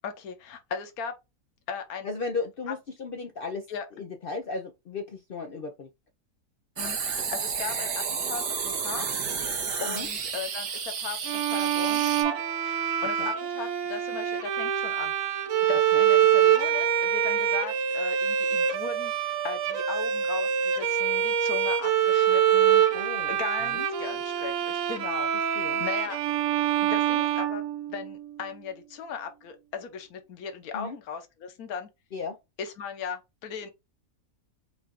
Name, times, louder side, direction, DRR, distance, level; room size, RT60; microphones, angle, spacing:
voice 1, 0.0-1.1 1.7-2.1 2.7-2.8 3.7-3.9 6.8-26.2 26.8-31.9 32.6-33.7, left 6 dB, 65° left, 1.3 m, -38 dB
voice 2, 2.0-3.6 3.9-5.9 9.9-10.1 13.2-13.3 15.9-16.0 22.9-23.3 23.7-23.9 25.6-25.8 30.7-31.0 32.1-32.4, left 4 dB, 80° left, 0.4 m, -35 dB
sound 1, 6.8-12.2, right 6 dB, 90° right, 1.8 m, -31 dB
Bowed string instrument, 11.3-28.2, right 9 dB, 65° right, 1.1 m, -25 dB
5.7 x 2.4 x 3.6 m
omnidirectional pair, 1.8 m